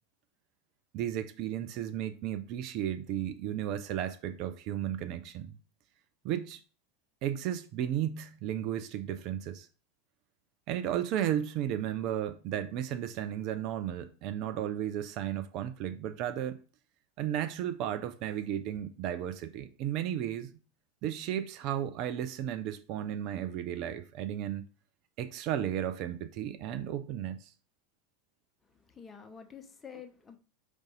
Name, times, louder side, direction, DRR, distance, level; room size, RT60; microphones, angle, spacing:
voice 1, 0.9-5.5 6.2-6.6 7.2-9.7 10.7-16.6 17.2-20.5 21.0-24.6 25.2-27.5, right 10 dB, 45° right, 0.4 m, -34 dB
voice 2, 28.9-30.4, left 7 dB, 20° left, 0.8 m, -48 dB
4.7 x 2.6 x 4.1 m
figure-of-eight pair, 85°, 0 cm